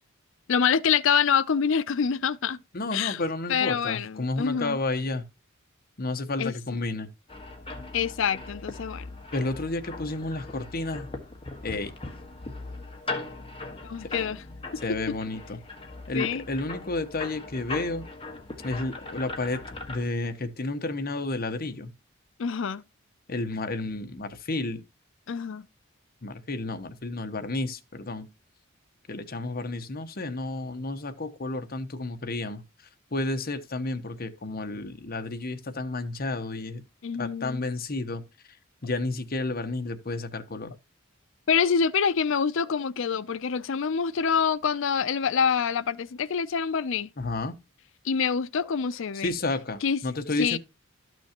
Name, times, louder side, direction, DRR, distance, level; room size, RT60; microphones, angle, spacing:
voice 1, 0.5-2.6 2.9-3.2 3.5-4.8 6.4-6.5 7.9-9.1 13.8-14.4 16.1-16.4 22.4-22.8 25.3-25.6 37.0-37.7 41.5-47.1 48.0-49.3 49.8-50.0 50.4-50.6, left 6 dB, 65° left, 0.5 m, -26 dB
voice 2, 2.7-5.2 6.0-7.1 9.3-11.1 11.6-11.9 14.8-15.6 16.1-18.0 18.6-19.6 19.9-21.9 23.3-24.8 26.2-28.3 29.1-32.6 33.1-36.8 37.2-38.2 38.8-40.7 47.2-47.5 49.2-50.6, left 2 dB, 45° left, 1.0 m, -31 dB
sound 1, 7.3-20.1, left 3 dB, 25° left, 1.4 m, -39 dB
12.5 x 6.2 x 2.9 m
head